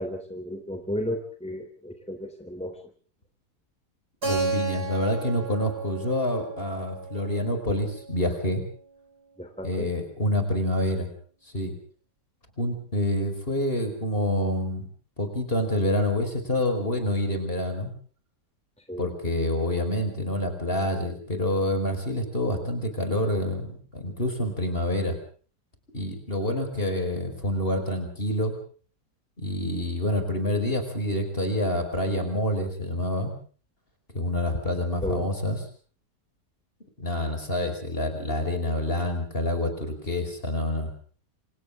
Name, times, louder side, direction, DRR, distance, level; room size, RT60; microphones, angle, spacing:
voice 1, 0.0-2.8 9.4-9.9 18.9-19.1 35.0-35.3, equal, 5° left, 5 dB, 3.3 m, -33 dB
voice 2, 4.2-8.6 9.6-11.1 11.5-11.8 12.6-14.9 15.2-17.9 19.0-25.2 25.9-28.5 29.4-33.3 34.1-35.6 37.0-40.9, left 1 dB, 35° left, 7 dB, 5.3 m, -27 dB
Keyboard (musical), 4.2-8.8, right 3 dB, 70° right, 8.3 m, -34 dB
28.0 x 27.0 x 3.7 m, 0.43 s
omnidirectional pair, 1.8 m